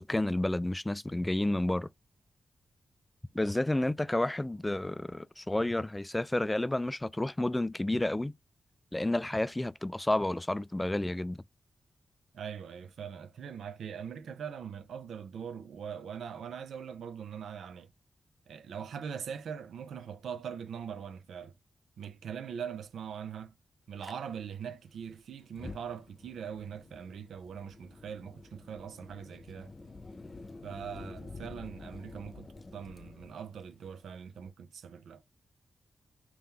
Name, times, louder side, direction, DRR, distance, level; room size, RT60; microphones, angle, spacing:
voice 1, 0.0-1.9 3.3-8.3 8.9-11.4, left 1 dB, 20° left, 0.3 m, -30 dB
voice 2, 12.3-17.9 18.5-21.5 22.0-23.5 23.9-29.7 30.6-35.2, right 7 dB, 90° right, 0.6 m, -42 dB
Fire, 24.0-24.1 25.4-34.5, left 3 dB, 40° left, 0.7 m, -49 dB
3.6 x 3.0 x 3.3 m
cardioid pair, 50°, 0 cm